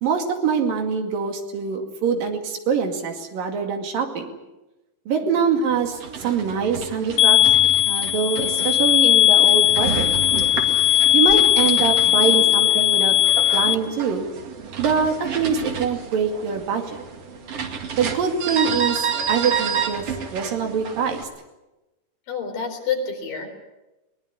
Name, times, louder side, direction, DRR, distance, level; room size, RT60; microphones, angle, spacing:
voice 1, 0.0-4.4 5.1-7.5 7.9-10.1 11.1-13.2 13.5-14.3 14.8-17.0 17.9-20.1 20.3-21.3, right 6 dB, 90° right, 4 dB, 4.1 m, -24 dB
sound 1, 5.9-21.2, right 6 dB, 50° right, 3.0 m, -30 dB
sound 2, 7.2-13.7, left 12 dB, 60° left, 1.7 m, -17 dB
voice 2, 22.3-23.6, left 6 dB, 80° left, 4 dB, 5.7 m, -28 dB
22.5 x 20.0 x 9.7 m, 1.0 s
omnidirectional pair, 3.9 m